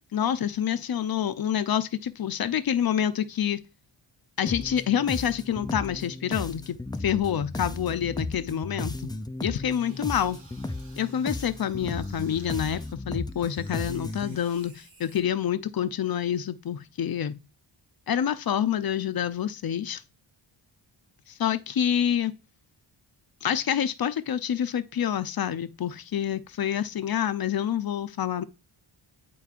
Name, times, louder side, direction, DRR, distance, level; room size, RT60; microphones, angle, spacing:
voice 1, 0.1-3.6 4.4-9.1 9.4-10.4 11.0-17.3 18.1-20.0 21.3-22.3 23.4-28.4, left 9 dB, 50° left, 0.6 m, -27 dB
sound 1, 4.5-14.4, left 2 dB, 10° left, 0.3 m, -35 dB
sound 2, 9.7-12.9 13.2-15.2, right 3 dB, 85° right, 2.5 m, -55 dB
8.4 x 4.6 x 2.5 m
wide cardioid pair, 90°, 48 cm